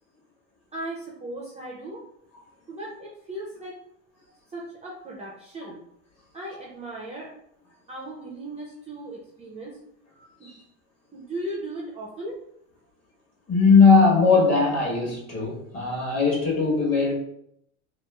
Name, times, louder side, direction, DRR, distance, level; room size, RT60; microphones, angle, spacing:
voice 1, 0.7-2.0 2.7-3.7 4.5-5.8 6.3-7.3 7.9-9.8 10.4-10.5 11.1-12.4, right 1 dB, 15° right, -3 dB, 0.4 m, -37 dB
voice 2, 13.5-17.1, left 4 dB, 35° left, -3 dB, 1.2 m, -19 dB
2.9 x 2.4 x 2.2 m, 0.77 s
supercardioid pair, 105°, 42 cm